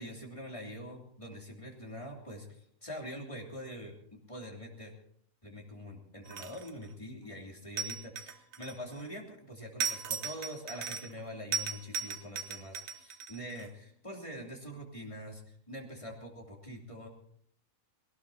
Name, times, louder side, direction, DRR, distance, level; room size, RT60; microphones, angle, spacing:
voice 1, 0.0-4.9 5.4-15.4 15.7-17.1, equal, 20° left, -1 dB, 3.0 m, -44 dB
sound 1, 6.2-6.8 7.8-9.1 9.8-11.2 11.5-13.7, right 6 dB, 75° right, 1.3 m, -37 dB
21.0 x 18.0 x 2.8 m, 0.64 s
omnidirectional pair, 1.4 m